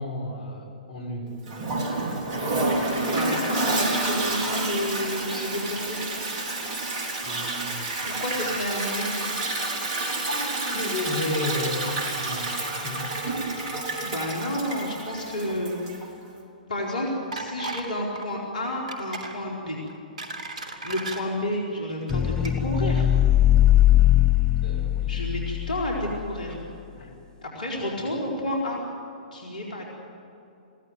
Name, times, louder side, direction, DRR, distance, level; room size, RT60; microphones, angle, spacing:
voice 1, 0.0-1.4 7.2-7.8 10.0-13.1 13.7-13.8 24.6-25.2 27.0-27.1 28.1-28.2, left 1 dB, 55° left, 2 dB, 4.9 m, -33 dB
Toilet flush, 1.5-16.1, right 2 dB, 35° right, 4.2 m, -29 dB
voice 2, 3.0-6.0 8.1-9.1 14.0-16.0 16.7-19.8 20.8-23.1 25.1-26.5 27.4-28.8 29.3-29.8, left 1 dB, 70° left, -2 dB, 4.4 m, -30 dB
sound 1, 17.3-17.9 18.2-18.4 18.9-19.4 19.9-21.2 22.0-22.1 22.4-22.5, right 3 dB, 60° right, 2.9 m, -35 dB
sound 2, 22.1-26.2, left 12 dB, 15° left, 0.4 m, -20 dB
22.5 x 17.0 x 9.3 m, 2.8 s
figure-of-eight pair, 115°, 4 cm